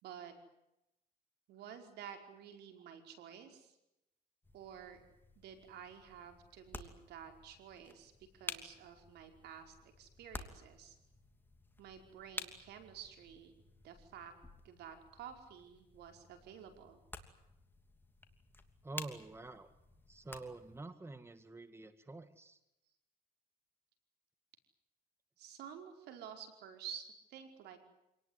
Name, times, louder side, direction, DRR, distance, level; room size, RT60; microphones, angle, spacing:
voice 1, 0.0-0.3 1.5-3.8 4.5-5.0 5.4-11.0 11.8-13.6 13.8-14.3 14.6-17.0 25.4-27.8, right 8 dB, 80° right, 5 dB, 5.2 m, -51 dB
sound 1, 4.4-20.8, left 2 dB, 10° left, 2.8 m, -52 dB
voice 2, 18.8-19.7 20.1-22.6, right 2 dB, 15° right, 10 dB, 1.9 m, -48 dB
27.0 x 19.0 x 9.7 m, 0.88 s
cardioid pair, 110°, 17 cm